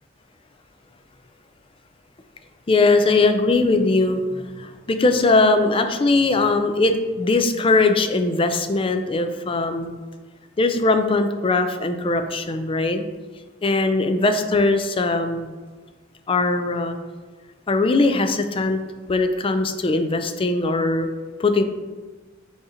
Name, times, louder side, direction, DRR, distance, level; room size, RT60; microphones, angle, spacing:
voice 1, 2.7-10.0 10.6-13.0 13.6-15.5 16.3-17.0 17.7-18.8 19.1-21.1 21.4-21.6, left 3 dB, 25° left, 7 dB, 0.4 m, -20 dB
7.3 x 2.9 x 4.9 m, 1.3 s
head